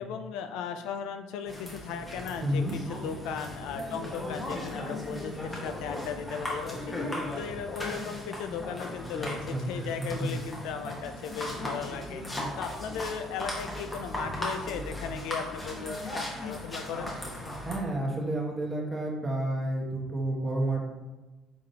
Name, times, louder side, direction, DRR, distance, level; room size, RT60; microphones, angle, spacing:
voice 1, 0.0-7.0 7.4-12.2 12.6-17.2, left 7 dB, 75° left, 8 dB, 0.3 m, -37 dB
sound 1, 1.5-17.8, left 1 dB, 20° left, 1.3 m, -37 dB
voice 2, 2.4-2.7 9.5-10.3 17.6-20.8, right 1 dB, 20° right, -1 dB, 1.3 m, -30 dB
5.0 x 3.7 x 2.8 m, 1.2 s
supercardioid pair, 70°, 0 cm